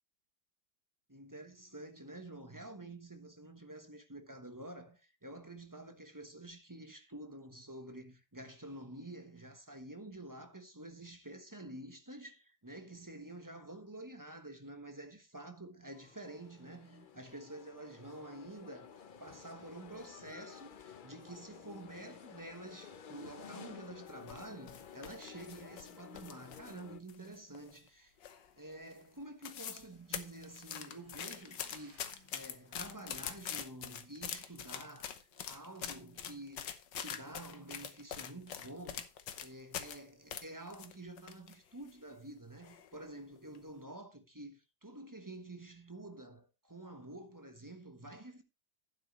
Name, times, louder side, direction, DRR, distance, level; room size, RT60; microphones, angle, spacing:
voice 1, 1.1-18.9 19.2-28.2 28.6-39.1 39.4-48.4, right 1 dB, 15° right, 0.9 m, -49 dB
sound 1, 15.9-27.0, left 7 dB, 65° left, 0.5 m, -53 dB
sound 2, 24.1-26.8 27.1-27.9 28.2-28.6 28.9-29.0 29.2-29.9 30.1-40.0 40.3-41.5 41.9-42.0 42.6-43.0 43.4-43.6, left 9 dB, 80° left, 1.6 m, -44 dB
Motorcycle / Engine, 27.7-36.9, right 1 dB, 70° right, 4.2 m, -68 dB
11.5 x 9.1 x 3.1 m
omnidirectional pair, 1.9 m